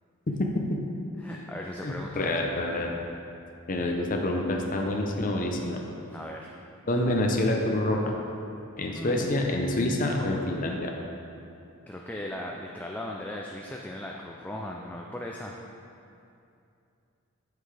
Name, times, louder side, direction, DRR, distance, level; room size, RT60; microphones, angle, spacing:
voice 1, 0.3-0.7 1.8-2.9 3.7-5.8 6.9-8.0 8.8-10.9, left 1 dB, 40° left, 1 dB, 0.7 m, -27 dB
voice 2, 1.2-2.4 6.1-6.5 8.9-9.4 11.9-15.6, left 1 dB, 5° left, -1 dB, 0.3 m, -37 dB
8.0 x 7.7 x 3.4 m, 2.6 s
head